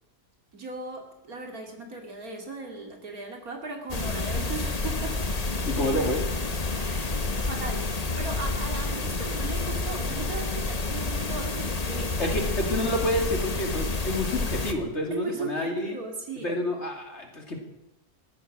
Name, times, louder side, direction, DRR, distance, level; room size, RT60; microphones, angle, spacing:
voice 1, 0.5-5.2 6.7-12.1 15.1-16.5, right 3 dB, 60° right, 2 dB, 3.1 m, -37 dB
sound 1, 3.9-14.7, left 3 dB, 25° left, 1.2 m, -29 dB
voice 2, 5.7-6.2 12.2-16.0 16.4-17.6, left 1 dB, 45° left, 2 dB, 2.9 m, -28 dB
15.5 x 14.5 x 6.1 m, 0.95 s
omnidirectional pair, 1.7 m